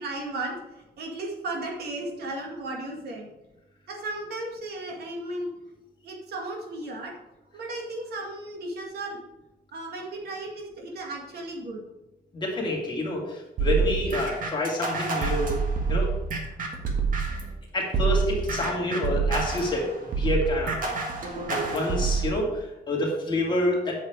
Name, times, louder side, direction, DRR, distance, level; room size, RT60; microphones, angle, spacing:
voice 1, 0.0-3.3 3.9-5.5 6.0-7.2 7.5-9.3 9.7-11.8, right 2 dB, 75° right, 0 dB, 2.1 m, -35 dB
voice 2, 12.3-15.6 15.9-16.1 17.7-24.0, left 1 dB, 25° left, -2 dB, 2.3 m, -28 dB
sound 1, 13.6-17.5 17.9-22.3, right 5 dB, 55° right, 1.6 m, -27 dB
8.3 x 6.5 x 4.8 m, 0.96 s
cardioid pair, 160°, 17 cm